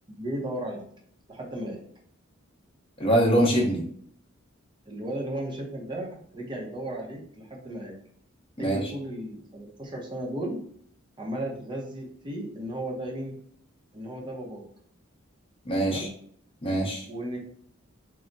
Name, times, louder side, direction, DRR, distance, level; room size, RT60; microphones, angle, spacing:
voice 1, 0.1-0.8 1.3-1.8 4.9-7.9 8.6-10.6 11.2-13.3 13.9-14.6 15.8-16.1 17.1-17.4, right 1 dB, 25° right, -1 dB, 0.6 m, -35 dB
voice 2, 3.0-3.8 8.6-8.9 15.6-16.1 16.6-17.1, right 1 dB, 25° left, -2 dB, 0.7 m, -23 dB
2.3 x 2.0 x 3.8 m, 0.62 s
head